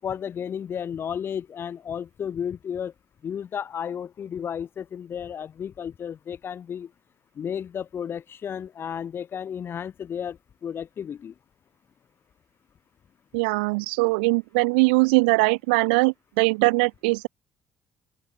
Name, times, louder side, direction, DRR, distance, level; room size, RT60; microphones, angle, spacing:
voice 1, 0.0-2.9 3.2-6.9 7.3-11.3, left 8 dB, 45° left, 4.7 m, -33 dB
voice 2, 13.3-17.3, right 29 dB, 70° right, 0.8 m, -21 dB
open air
figure-of-eight pair, 45°, 5 cm